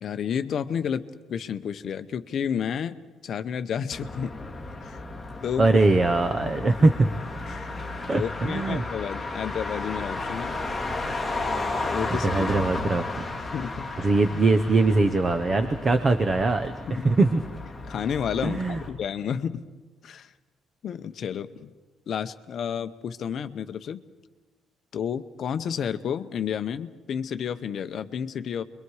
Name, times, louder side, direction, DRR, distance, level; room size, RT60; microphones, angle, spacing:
voice 1, 0.0-3.0 3.2-4.4 4.8-5.0 5.4-5.7 6.4-6.5 7.5-10.6 11.8-12.5 13.5-13.9 16.9-17.1 17.9-19.6 20.0-20.3 20.8-21.7 22.1-24.0 24.9-28.6, left 8 dB, 40° left, 10 dB, 0.8 m, -31 dB
Motor vehicle (road), 3.9-18.9, left 2 dB, ahead, 2.7 m, -34 dB
voice 2, 5.6-7.1 8.1-8.8 12.2-13.0 14.0-17.4 18.4-18.8, right 3 dB, 25° right, 8 dB, 0.7 m, -22 dB
29.0 x 22.5 x 4.8 m, 1.3 s
cardioid pair, 180°, 0 cm